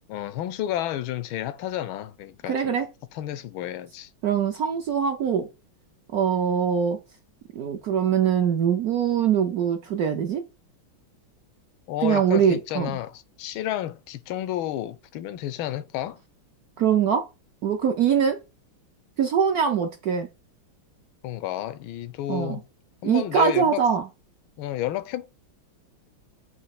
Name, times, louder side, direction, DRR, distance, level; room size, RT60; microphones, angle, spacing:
voice 1, 0.1-2.8 3.1-4.1 11.9-16.2 21.2-22.6 23.0-23.8 24.6-25.3, left 12 dB, 80° left, 1.4 m, -31 dB
voice 2, 2.5-2.9 4.2-5.5 6.1-7.0 7.5-10.4 12.0-13.0 16.8-17.3 17.6-18.4 19.2-20.3 22.3-22.6 23.0-24.0, right 8 dB, 65° right, 0.9 m, -23 dB
6.4 x 3.0 x 5.8 m
omnidirectional pair, 2.3 m